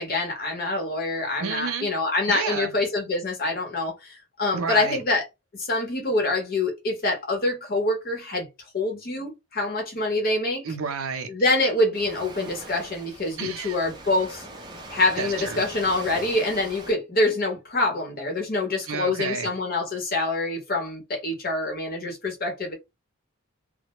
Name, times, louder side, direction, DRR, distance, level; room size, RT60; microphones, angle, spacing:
voice 1, 0.0-5.2 5.5-8.5 8.7-10.6 11.3-14.5 14.9-22.7, left 2 dB, 45° left, 0.8 m, -26 dB
voice 2, 1.4-1.9 2.3-2.7 4.5-5.0 10.6-11.3 13.4-13.8 15.2-15.6 18.9-19.5, right 6 dB, 80° right, 0.5 m, -30 dB
Waves surf, 11.9-16.9, right 1 dB, 20° right, 0.4 m, -41 dB
2.1 x 2.1 x 2.9 m
head